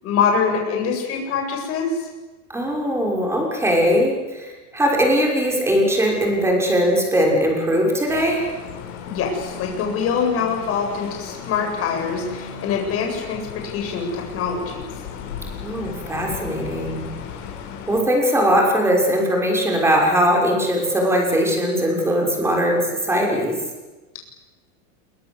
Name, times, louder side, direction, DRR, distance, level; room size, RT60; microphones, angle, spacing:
voice 1, 0.0-2.1 9.1-14.8, left 6 dB, 30° left, 1 dB, 7.9 m, -24 dB
voice 2, 2.5-8.4 15.6-17.0 17.9-23.5, equal, 5° right, 0 dB, 6.2 m, -20 dB
sound 1, 8.1-18.0, left 7 dB, 75° left, 7.5 m, -36 dB
27.5 x 24.0 x 8.2 m, 1.2 s
supercardioid pair, 160°, 43 cm